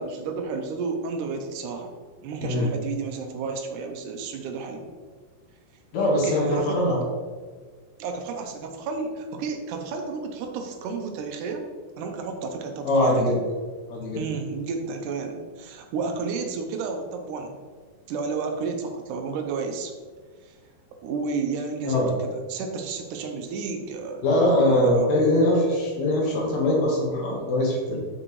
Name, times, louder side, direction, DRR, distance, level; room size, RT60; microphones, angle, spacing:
voice 1, 0.0-1.9 2.2-4.8 6.2-6.9 8.0-11.7 12.0-13.2 14.1-17.6 18.1-19.9 20.5-20.6 21.0-24.2 24.6-25.1, right 4 dB, 80° right, 4 dB, 1.8 m, -32 dB
voice 2, 5.9-7.0 12.8-13.4 13.9-14.2 21.9-22.1 24.2-28.0, left 1 dB, 60° left, -3 dB, 2.2 m, -22 dB
7.1 x 6.3 x 3.1 m, 1.5 s
omnidirectional pair, 4.4 m